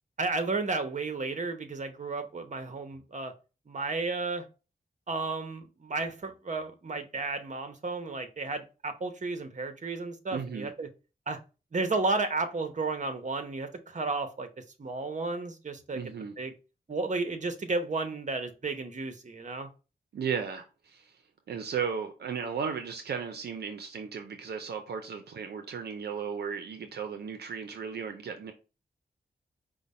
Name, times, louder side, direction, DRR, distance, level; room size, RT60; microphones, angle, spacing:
voice 1, 0.2-3.3 3.7-4.4 5.1-10.9 11.3-11.4 11.7-14.5 14.8-16.0 16.4-16.5 16.9-19.7, right 3 dB, 45° right, 0.9 m, -33 dB
voice 2, 10.3-10.7 15.9-16.3 20.1-21.2 21.5-28.5, right 6 dB, 80° right, 0.5 m, -35 dB
4.9 x 2.1 x 4.2 m
cardioid pair, 45°, 17 cm